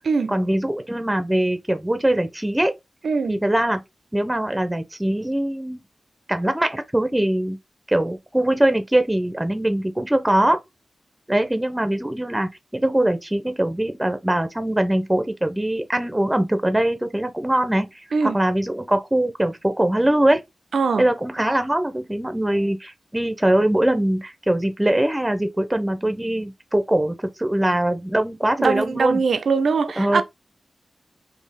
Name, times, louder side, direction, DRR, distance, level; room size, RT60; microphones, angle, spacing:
voice 1, 0.3-2.7 3.3-3.8 4.1-5.8 6.3-7.6 7.9-10.6 11.3-20.4 21.0-29.2 30.0-30.2, right 1 dB, 10° right, 0.7 m, -22 dB
voice 2, 3.0-3.3 18.1-18.4 20.7-21.1 28.6-30.2, right 5 dB, 85° right, 0.6 m, -21 dB
4.4 x 2.8 x 3.4 m
wide cardioid pair, 85°, 0 cm